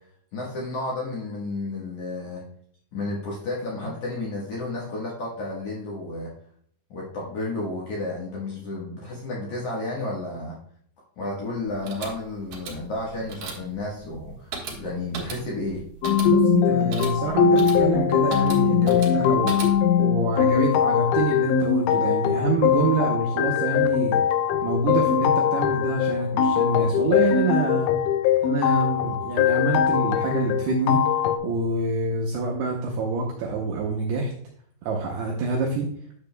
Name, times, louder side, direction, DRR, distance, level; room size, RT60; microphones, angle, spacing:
voice 1, 0.3-2.4 2.9-6.3 6.9-10.6 11.2-15.8, left 2 dB, 70° left, -5 dB, 1.8 m, -32 dB
sound 1, 11.7-20.0, right 5 dB, 65° right, 2.4 m, -38 dB
sound 2, 16.0-31.4, left 8 dB, 85° left, 3.1 m, -21 dB
voice 2, 16.3-19.6 20.0-24.2 24.6-27.9 28.4-31.0 31.4-34.3 34.8-35.9, right 3 dB, 85° right, 0 dB, 2.3 m, -26 dB
10.0 x 6.9 x 2.2 m, 0.63 s
omnidirectional pair, 5.7 m